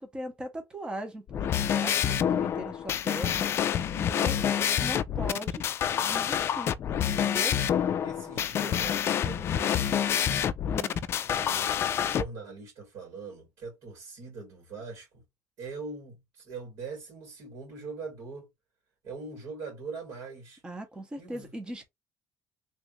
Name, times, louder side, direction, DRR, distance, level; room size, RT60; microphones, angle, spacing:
voice 1, 0.0-5.6 6.0-6.7 7.0-7.5 10.7-11.0 20.6-21.9, right 1 dB, 15° right, 0.9 m, -40 dB
sound 1, 1.3-12.2, left 9 dB, 45° left, 0.3 m, -27 dB
voice 2, 3.8-4.4 8.0-10.3 11.2-15.2 15.6-18.5 19.0-20.6 21.2-21.5, right 4 dB, 70° right, 2.2 m, -42 dB
3.4 x 2.5 x 3.0 m
cardioid pair, 120°, 6 cm